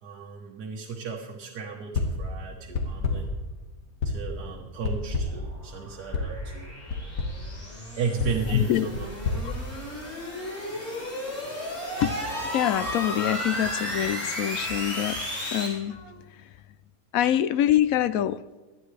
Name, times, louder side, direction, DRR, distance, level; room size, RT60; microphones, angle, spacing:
voice 1, 0.0-3.3 4.1-6.7 8.0-9.4, right 5 dB, 75° right, -1 dB, 1.8 m, -35 dB
sound 1, 1.9-2.3 2.7-3.4 4.0-4.4 4.8-5.5 6.1-6.4 6.9-7.4 8.2-10.3, left 3 dB, 85° left, 2.4 m, -30 dB
sound 2, 4.5-15.7, left 1 dB, 40° left, 5.2 m, -35 dB
voice 2, 8.5-8.9 9.4-9.5 12.0-12.1 12.4-15.2 15.5-16.0 17.1-18.4, left 11 dB, 70° left, 16 dB, 0.9 m, -25 dB
sound 3, 12.0-15.6 15.9-16.2, right 1 dB, 20° right, 1.0 m, -39 dB
19.0 x 12.0 x 3.3 m, 1.3 s
omnidirectional pair, 1.8 m